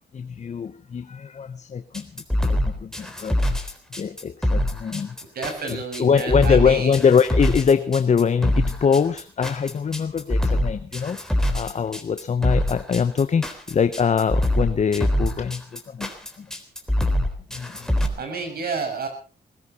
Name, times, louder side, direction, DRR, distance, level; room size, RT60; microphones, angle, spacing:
voice 1, 0.1-3.4 3.9-5.2 5.7-16.1 16.4-16.5 17.5-18.2, left 6 dB, 40° left, 1.0 m, -23 dB
sound 1, 1.9-18.1, left 1 dB, 5° left, 3.8 m, -24 dB
voice 2, 5.3-7.0 18.2-19.1, right 4 dB, 60° right, 6.4 m, -30 dB
20.5 x 16.5 x 4.3 m
cardioid pair, 85°, 17 cm